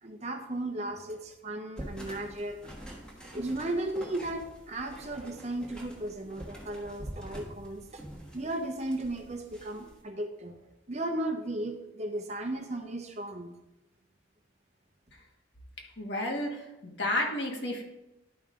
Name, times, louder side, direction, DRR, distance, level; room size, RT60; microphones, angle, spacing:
voice 1, 0.0-2.9 3.3-8.0 8.3-13.6, right 1 dB, 35° right, 5 dB, 0.8 m, -35 dB
sound 1, 1.8-10.0, equal, 5° left, 1.3 m, -46 dB
voice 2, 16.0-17.8, left 1 dB, 60° left, 1 dB, 1.6 m, -32 dB
11.5 x 5.3 x 3.7 m, 0.96 s
head